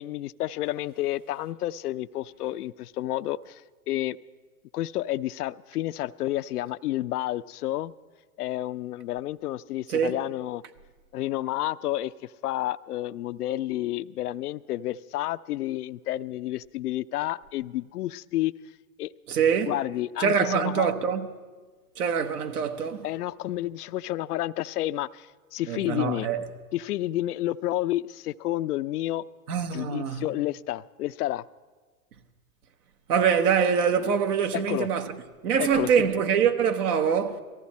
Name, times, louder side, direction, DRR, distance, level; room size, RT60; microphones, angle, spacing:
voice 1, 0.0-3.6 3.9-4.2 4.7-7.9 8.4-10.6 11.1-12.1 12.4-18.5 19.0-19.1 19.7-20.9 23.0-25.3 25.5-26.3 26.7-29.2 29.7-31.4 34.7-34.9 35.6-36.1, left 15 dB, 85° left, 0.5 m, -30 dB
voice 2, 19.3-19.8 20.2-21.3 22.0-23.1 25.7-26.4 29.5-30.2 33.1-35.1 35.4-37.4, right 7 dB, 75° right, 1.2 m, -24 dB
18.0 x 14.5 x 4.2 m
hypercardioid pair, 110°, 45 cm